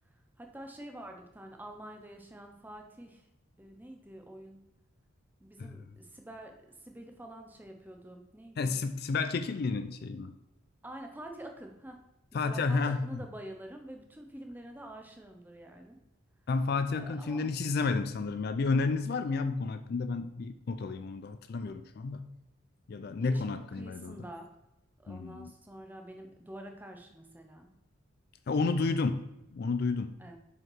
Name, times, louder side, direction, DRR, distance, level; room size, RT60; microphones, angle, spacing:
voice 1, 0.4-3.3 3.6-4.6 5.4-8.8 10.8-12.0 12.3-16.0 16.9-17.4 23.2-24.5 25.0-27.7 30.2-30.4, right 1 dB, 10° right, 3 dB, 0.7 m, -47 dB
voice 2, 8.6-10.3 12.3-13.0 16.5-22.3 22.9-24.2 25.1-25.5 28.5-29.3 29.5-30.1, left 4 dB, 45° left, 10 dB, 0.3 m, -31 dB
5.8 x 5.3 x 4.5 m, 0.92 s
head